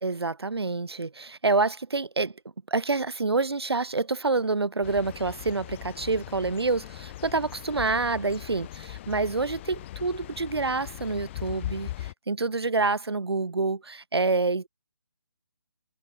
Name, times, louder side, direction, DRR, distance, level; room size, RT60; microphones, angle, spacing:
voice 1, 0.0-2.4 2.7-14.7, right 3 dB, 75° right, 1.7 m, -27 dB
sound 1, 4.8-12.1, left 14 dB, 30° left, 7.0 m, -40 dB
figure-of-eight pair, 150°, 13 cm